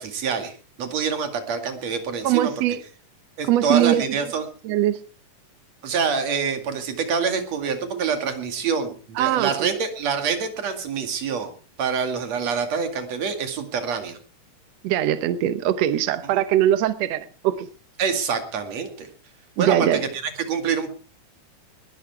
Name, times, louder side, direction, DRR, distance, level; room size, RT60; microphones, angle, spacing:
voice 1, 0.0-2.5 3.4-4.5 5.8-11.5 11.8-14.2 16.3-16.4 18.0-19.1 19.6-20.9, right 6 dB, 50° right, 3.1 m, -26 dB
voice 2, 2.2-2.8 3.5-4.0 4.6-5.0 9.2-9.7 14.8-17.7 19.6-20.0, right 12 dB, 75° right, 1.5 m, -21 dB
20.0 x 11.5 x 4.7 m
omnidirectional pair, 4.1 m